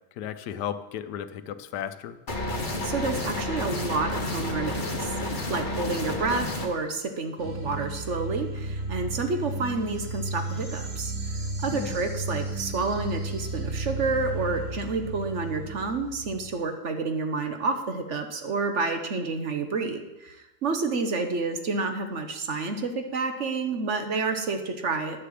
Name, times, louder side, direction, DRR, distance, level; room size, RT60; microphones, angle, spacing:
voice 1, 0.2-2.2 11.7-12.0, left 9 dB, 90° left, 12 dB, 1.3 m, -34 dB
sound 1, 2.3-6.7, left 1 dB, 30° left, 1.5 m, -30 dB
voice 2, 2.5-5.1 5.5-11.1 11.6-20.4 20.6-25.3, right 3 dB, 50° right, 6 dB, 1.2 m, -29 dB
sound 2, 7.4-16.5, right 2 dB, 90° right, 2.7 m, -34 dB
10.5 x 6.6 x 7.6 m, 1.0 s
omnidirectional pair, 1.7 m